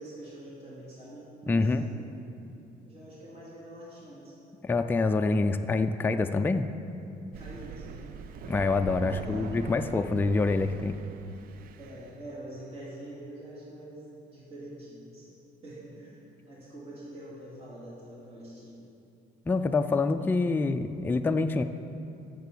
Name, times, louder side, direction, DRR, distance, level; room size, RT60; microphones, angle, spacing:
voice 1, 0.0-2.4 2.8-4.4 7.4-8.2 9.1-9.5 11.8-15.4 15.6-18.9, right 1 dB, 35° right, -8 dB, 2.5 m, -45 dB
voice 2, 1.5-1.8 4.6-6.7 8.5-11.0 19.5-21.6, left 3 dB, 10° left, 7 dB, 0.3 m, -26 dB
Thunder, 7.3-12.2, right 7 dB, 60° right, 0.5 m, -42 dB
8.1 x 7.0 x 6.8 m, 2.7 s
cardioid pair, 110°, 17 cm